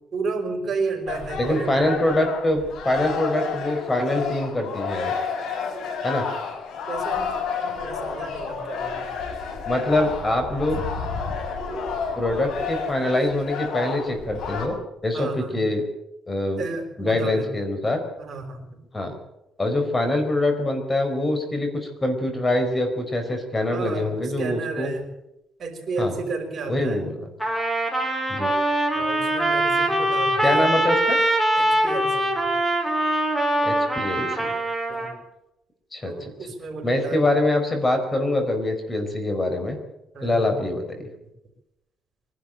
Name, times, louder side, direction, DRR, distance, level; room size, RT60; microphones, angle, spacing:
voice 1, 0.1-1.9 6.9-9.1 15.1-15.6 16.6-17.5 18.2-18.8 23.7-25.1 25.6-27.0 28.9-30.7 31.6-32.5 34.9-35.2 36.0-37.2 40.1-40.7, right 4 dB, 45° right, 2 dB, 5.5 m, -32 dB
sound 1, 1.1-14.7, left 5 dB, 70° left, 5.8 m, -30 dB
voice 2, 1.4-5.1 6.0-6.3 9.7-10.8 12.2-14.8 15.0-15.8 16.3-16.6 17.0-18.0 18.9-19.2 19.6-24.9 26.0-26.1 26.7-27.3 28.3-28.5 30.4-31.2 33.6-34.4 35.9-36.3 36.8-39.8 40.2-41.1, left 1 dB, 20° left, 6 dB, 4.6 m, -24 dB
Trumpet, 27.4-35.1, right 1 dB, ahead, 4.5 m, -23 dB
24.0 x 12.0 x 9.0 m, 0.88 s
cardioid pair, 110°, 0 cm